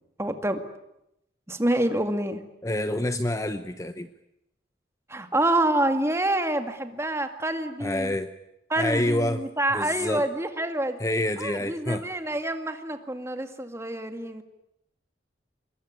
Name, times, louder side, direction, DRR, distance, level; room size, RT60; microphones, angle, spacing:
voice 1, 0.2-0.6 1.5-2.4 5.1-8.1 8.7-11.0 11.4-14.4, right 1 dB, 15° right, 7 dB, 2.2 m, -27 dB
voice 2, 2.6-4.1 7.8-8.3 8.8-9.4 9.7-10.3 11.0-12.1, left 1 dB, 20° left, 10 dB, 0.9 m, -27 dB
25.5 x 22.0 x 9.7 m, 0.83 s
head